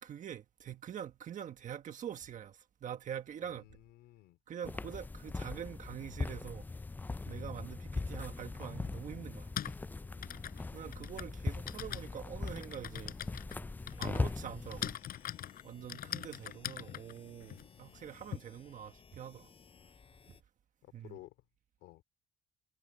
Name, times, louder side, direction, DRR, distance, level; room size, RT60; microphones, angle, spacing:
voice 1, 0.0-3.7 4.5-6.7 7.2-9.5 10.7-13.1 13.9-15.0 15.6-19.5 20.9-21.2, right 9 dB, 50° right, 1.4 m, -45 dB
voice 2, 3.4-4.4 7.4-7.5 10.2-10.3 15.8-16.3 19.7-19.9 21.0-21.3 21.8-22.0, left 17 dB, 85° left, 3.8 m, -56 dB
sound 1, 4.6-15.0, left 3 dB, 10° left, 0.3 m, -40 dB
Typing, 8.2-8.3 9.3-18.4, left 11 dB, 60° left, 4.1 m, -43 dB
sound 2, 13.9-20.4, left 6 dB, 35° left, 6.3 m, -60 dB
cardioid pair, 110°, 17 cm